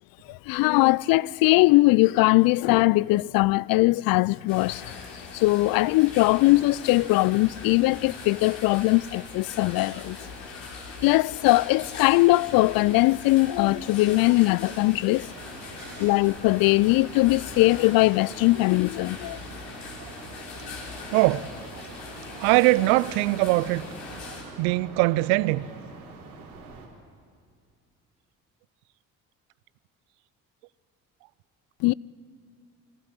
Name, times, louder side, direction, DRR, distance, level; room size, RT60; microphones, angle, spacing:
voice 1, 0.3-5.0 5.3-10.2 11.0-15.3 16.0-19.4 31.8-31.9, left 20 dB, 55° left, 0.5 m, -21 dB
sound 1, 4.5-24.4, left 4 dB, 75° left, 3.9 m, -41 dB
sound 2, 15.2-26.9, right 4 dB, 85° right, 3.8 m, -45 dB
voice 2, 21.1-21.9 22.3-23.9 24.3-25.7, right 19 dB, 65° right, 0.6 m, -23 dB
24.0 x 16.0 x 9.8 m
hypercardioid pair, 55°, 42 cm